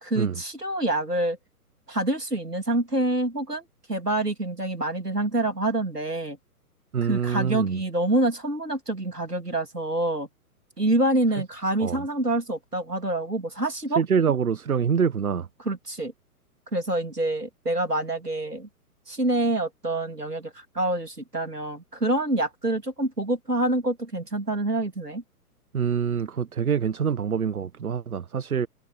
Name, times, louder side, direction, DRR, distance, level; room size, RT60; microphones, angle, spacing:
voice 1, 0.0-1.4 1.9-6.4 7.0-10.3 10.8-14.0 15.6-16.1 16.7-18.7 19.1-25.2, right 1 dB, 90° right, 3.3 m, -26 dB
voice 2, 6.9-7.8 11.8-12.0 13.9-15.5 25.7-28.7, right 7 dB, 65° right, 1.4 m, -25 dB
figure-of-eight pair, 120°, 46 cm